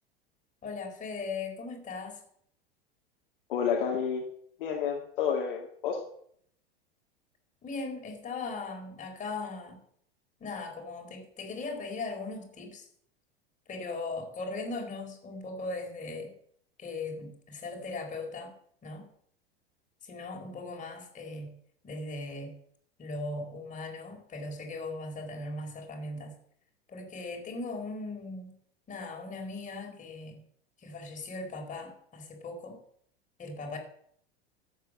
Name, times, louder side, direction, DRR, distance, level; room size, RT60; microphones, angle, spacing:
voice 1, 0.6-2.2 7.6-9.8 10.4-12.9 13.7-16.3 16.8-18.5 18.8-19.1 20.0-21.5 21.8-22.5 23.0-26.4 26.9-28.5 28.9-30.4 30.8-32.8 33.4-33.8, left 3 dB, 25° left, 2 dB, 4.2 m, -38 dB
voice 2, 3.5-4.2 4.6-6.0, left 7 dB, 55° left, 1 dB, 2.2 m, -30 dB
12.5 x 9.0 x 7.6 m, 0.66 s
figure-of-eight pair, 85°, 31 cm